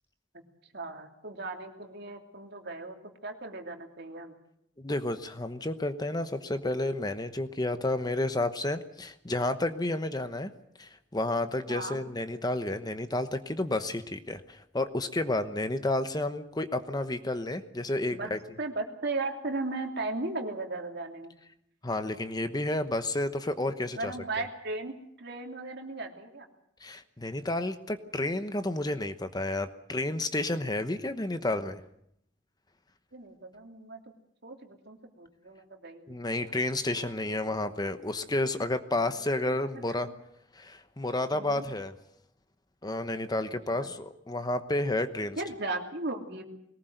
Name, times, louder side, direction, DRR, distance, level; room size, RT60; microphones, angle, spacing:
voice 1, 0.7-3.0 3.2-4.4 11.7-12.0 18.1-21.4 24.0-26.5 33.1-34.0 34.4-36.2 36.9-37.1 39.5-39.6 40.0-40.1 41.3-41.6 43.7-43.9 45.4-46.4, right 2 dB, 60° right, 3 dB, 3.0 m, -37 dB
voice 2, 4.8-10.5 10.8-18.4 21.8-24.1 26.8-31.8 36.1-40.1 40.5-41.9 42.8-45.4, left 2 dB, 20° left, 10 dB, 1.0 m, -31 dB
21.5 x 19.5 x 8.0 m, 0.74 s
head